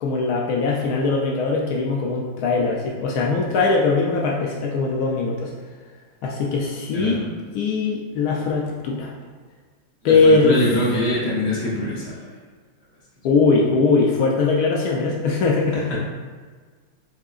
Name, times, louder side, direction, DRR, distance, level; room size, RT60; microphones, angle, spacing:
voice 1, 0.0-5.5 6.2-7.2 7.5-9.1 10.0-10.6 13.2-15.8, left 4 dB, 85° left, -2 dB, 0.8 m, -20 dB
voice 2, 6.9-7.2 10.0-12.1 15.9-16.0, equal, 40° left, -7 dB, 1.3 m, -24 dB
7.3 x 2.8 x 2.4 m, 1.5 s
omnidirectional pair, 2.2 m